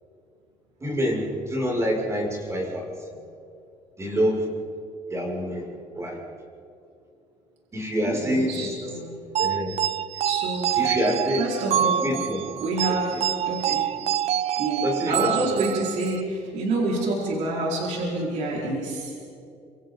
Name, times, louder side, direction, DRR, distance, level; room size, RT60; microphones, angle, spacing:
voice 1, 0.8-2.9 4.0-4.5 5.1-5.7 5.9-6.2 7.7-8.7 9.4-9.7 10.8-11.4 12.0-12.4 13.1-13.2 14.8-15.3, equal, 20° right, -2 dB, 6.7 m, -26 dB
voice 2, 8.0-9.2 10.2-10.9 11.4-12.2 12.6-13.8 14.6-19.1, right 2 dB, 70° right, -4 dB, 5.2 m, -28 dB
sound 1, 9.4-16.2, right 10 dB, 55° right, 0.5 m, -26 dB
28.0 x 27.0 x 4.1 m, 2.6 s
cardioid pair, 120°, 13 cm